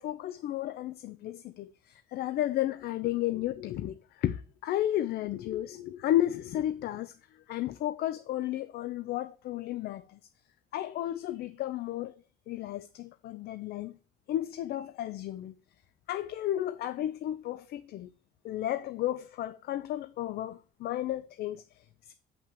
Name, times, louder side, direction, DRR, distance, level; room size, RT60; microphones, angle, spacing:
voice 1, 0.0-10.2 10.7-12.1 12.5-14.0 14.3-15.5 16.1-18.1 18.4-22.1, left 13 dB, 70° left, 0.7 m, -33 dB
6.9 x 6.0 x 7.4 m
cardioid pair, 110°, 17 cm